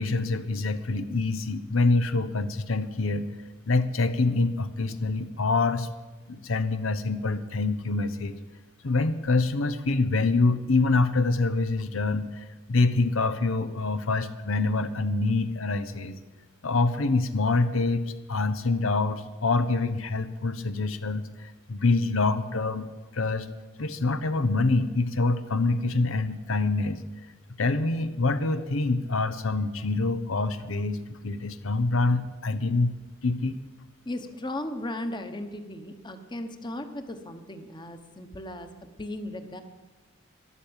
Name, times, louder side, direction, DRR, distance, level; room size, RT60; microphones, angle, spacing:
voice 1, 0.0-3.3 3.7-5.9 6.3-8.4 8.8-16.2 16.6-18.0 18.3-23.5 23.8-27.0 27.6-32.9 33.2-33.5, left 3 dB, 80° left, 10 dB, 0.9 m, -26 dB
voice 2, 34.0-39.6, left 1 dB, 25° left, 7 dB, 1.2 m, -36 dB
12.5 x 11.5 x 8.9 m, 1.2 s
head